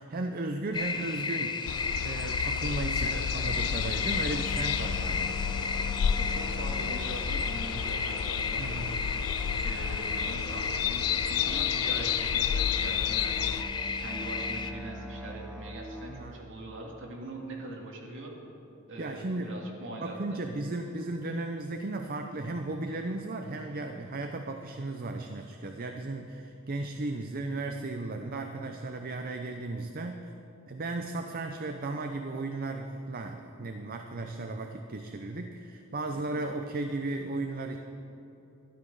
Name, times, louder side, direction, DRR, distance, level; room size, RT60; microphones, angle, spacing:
voice 1, 0.0-1.6 2.0-5.4 8.6-9.0 16.1-16.4 19.0-19.6 20.0-30.3 30.7-37.8, right 2 dB, 40° right, 5 dB, 0.6 m, -35 dB
sound 1, 0.7-14.7, left 4 dB, 20° left, 0.5 m, -33 dB
sound 2, 1.7-13.6, left 8 dB, 80° left, 0.4 m, -32 dB
Musical instrument, 3.4-16.2, left 1 dB, 5° right, 1.2 m, -43 dB
voice 2, 6.2-8.8 9.6-18.3 18.9-20.4 36.1-36.4, right 2 dB, 60° right, -1 dB, 2.3 m, -42 dB
13.0 x 11.5 x 5.4 m, 3.0 s
head